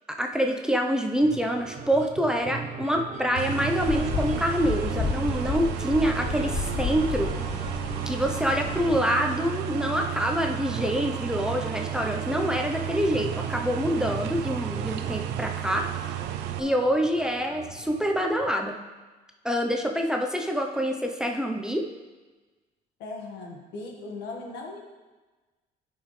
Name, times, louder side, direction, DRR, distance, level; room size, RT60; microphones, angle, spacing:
voice 1, 0.1-7.3 8.1-15.8 16.6-18.8 19.4-21.9, equal, 5° right, 2 dB, 0.7 m, -26 dB
sound 1, 1.2-18.5, right 5 dB, 45° right, 0.9 m, -39 dB
sound 2, 3.4-16.6, right 12 dB, 85° right, 0.6 m, -33 dB
sound 3, 3.8-9.0, left 6 dB, 30° left, 0.6 m, -32 dB
voice 2, 23.0-24.8, left 3 dB, 80° left, 0 dB, 1.7 m, -38 dB
12.5 x 5.4 x 3.3 m, 1.2 s
cardioid pair, 110°, 17 cm